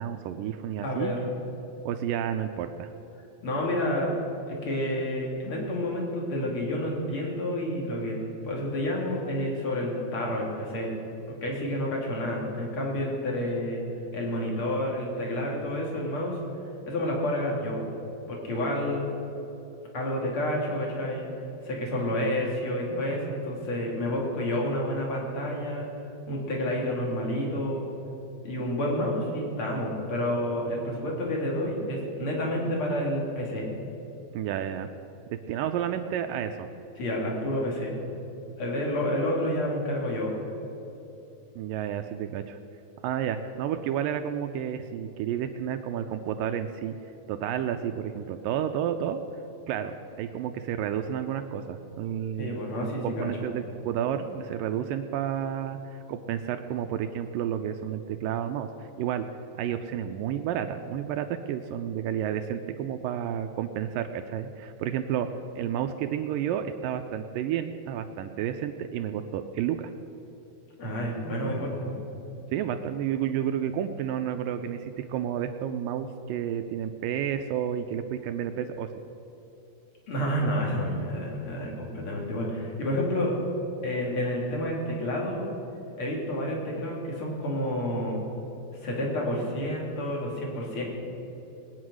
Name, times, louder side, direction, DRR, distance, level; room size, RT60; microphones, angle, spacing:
voice 1, 0.0-1.1 1.9-2.9 34.3-34.9 35.3-36.7 41.6-42.6 43.0-47.0 47.3-49.2 49.7-52.6 53.0-59.3 59.5-65.3 65.6-69.9 72.5-78.9, right 9 dB, 85° right, 7 dB, 2.0 m, -31 dB
voice 2, 0.8-1.3 3.4-4.1 4.5-8.2 8.4-10.9 11.4-13.8 14.1-16.4 16.9-17.9 18.3-19.0 19.9-21.3 21.6-25.9 26.3-27.9 28.4-33.7 37.0-38.0 38.6-40.3 52.4-53.3 70.8-71.9 80.1-83.4 83.8-85.4 86.0-88.2 88.8-90.8, left 1 dB, 40° left, -2 dB, 3.2 m, -29 dB
21.0 x 9.5 x 6.2 m, 3.0 s
omnidirectional pair, 4.4 m